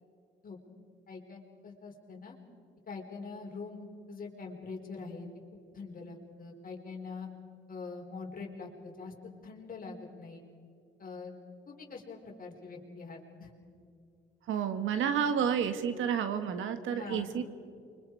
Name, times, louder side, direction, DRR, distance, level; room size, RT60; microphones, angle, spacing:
voice 1, 1.1-2.4 2.9-5.3 5.7-7.3 7.7-9.1 9.4-10.4 11.0-11.3 11.7-13.5 16.9-17.3, left 4 dB, 45° left, 1 dB, 4.5 m, -44 dB
voice 2, 14.5-17.4, right 8 dB, 80° right, 9 dB, 1.7 m, -30 dB
29.0 x 25.0 x 4.8 m, 2.4 s
cardioid pair, 90°, 20 cm